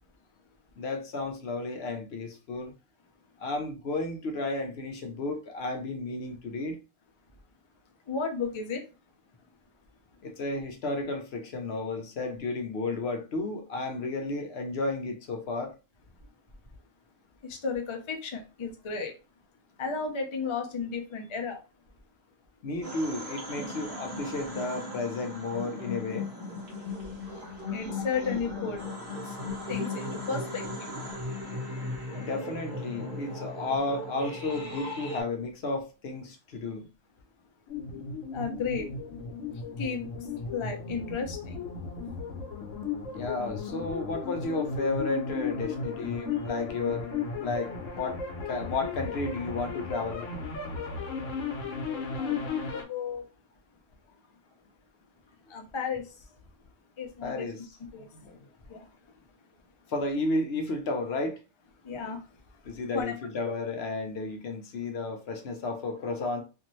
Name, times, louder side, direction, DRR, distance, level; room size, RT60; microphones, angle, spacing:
voice 1, 0.8-2.7 3.4-6.8 10.2-15.7 22.6-26.3 32.2-36.9 43.1-47.1 47.4-48.2 48.4-50.2 57.2-57.6 58.1-58.4 59.9-61.4 62.7-66.4, left 3 dB, 65° left, 0.8 m, -32 dB
voice 2, 8.1-8.8 17.4-19.1 19.8-21.6 27.7-28.9 29.2-29.4 29.7-30.9 37.9-38.1 38.3-39.0 39.8-41.9 51.8-53.2 55.5-56.2 57.0-57.5 57.9-58.1 58.7-59.1 61.8-62.6 62.9-63.1 63.4-63.5, left 5 dB, 40° left, 0.4 m, -34 dB
sound 1, 22.8-35.2, left 2 dB, 45° right, 1.2 m, -37 dB
sound 2, 37.7-52.8, left 5 dB, 90° left, 1.1 m, -35 dB
2.6 x 2.6 x 3.0 m
omnidirectional pair, 1.3 m